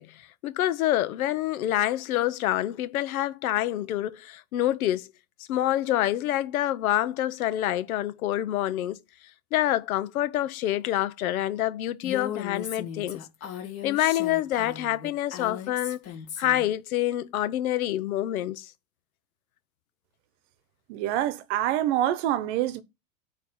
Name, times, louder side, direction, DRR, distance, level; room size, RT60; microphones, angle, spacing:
voice 1, 0.0-5.1 5.5-9.0 9.5-13.2 13.8-16.0 16.4-18.7, left 13 dB, 85° left, 0.9 m, -27 dB
Female speech woman speaking, 12.0-16.7, left 9 dB, 35° left, 1.9 m, -37 dB
voice 2, 20.9-22.8, right 12 dB, 55° right, 0.9 m, -26 dB
9.2 x 3.2 x 5.5 m
supercardioid pair, 150°, 42 cm